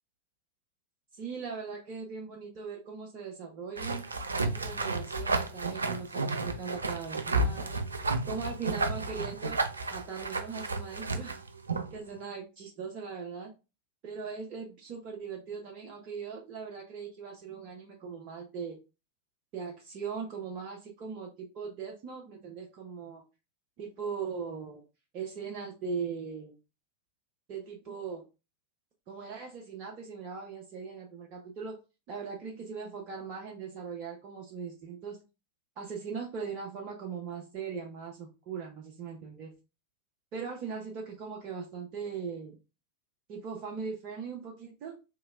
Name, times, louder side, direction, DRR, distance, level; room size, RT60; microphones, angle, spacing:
voice 1, 1.1-4.0 4.5-7.8 8.3-11.4 11.9-13.5 14.0-18.8 19.5-23.2 23.8-24.8 25.1-26.5 27.5-28.2 29.1-31.8 32.1-35.2 35.8-39.5 40.3-42.6 43.3-45.0, right 5 dB, 40° right, 0 dB, 0.6 m, -39 dB
sound 1, 3.8-12.0, right 3 dB, 75° right, 0.4 m, -32 dB
3.1 x 2.9 x 2.3 m, 0.28 s
figure-of-eight pair, 90°, 0 cm